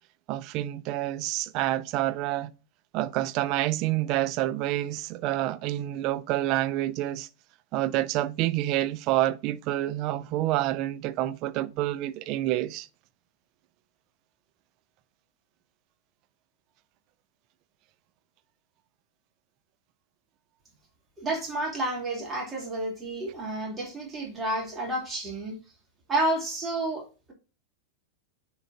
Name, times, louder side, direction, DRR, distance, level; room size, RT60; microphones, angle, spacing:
voice 1, 0.3-2.5 2.9-7.3 7.7-12.9, right 15 dB, 40° right, 0.5 m, -28 dB
voice 2, 21.2-25.6 26.1-27.3, right 1 dB, 15° right, 2.7 m, -30 dB
9.8 x 4.7 x 2.6 m
figure-of-eight pair, 90°, 0 cm